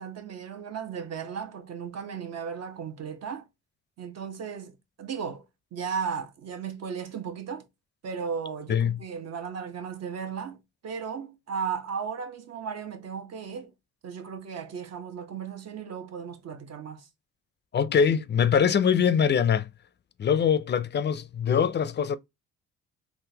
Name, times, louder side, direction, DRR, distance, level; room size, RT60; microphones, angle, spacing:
voice 1, 0.0-3.5 4.0-5.4 5.7-7.7 8.0-13.7 14.0-17.1, right 6 dB, 55° right, 0.9 m, -35 dB
voice 2, 17.7-19.7 20.2-22.2, left 7 dB, 35° left, 0.4 m, -23 dB
3.7 x 2.4 x 2.7 m
cardioid pair, 90°, 30 cm